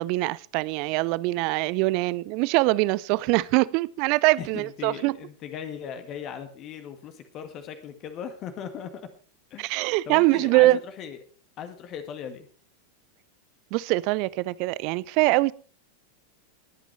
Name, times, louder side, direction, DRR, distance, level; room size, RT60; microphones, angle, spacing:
voice 1, 0.0-5.2 9.6-10.8 13.7-15.5, right 20 dB, 45° right, 0.5 m, -23 dB
voice 2, 4.4-9.1 9.5-11.2 11.6-12.5, left 8 dB, 35° left, 1.7 m, -38 dB
21.0 x 9.1 x 3.3 m
figure-of-eight pair, 90°, 0 cm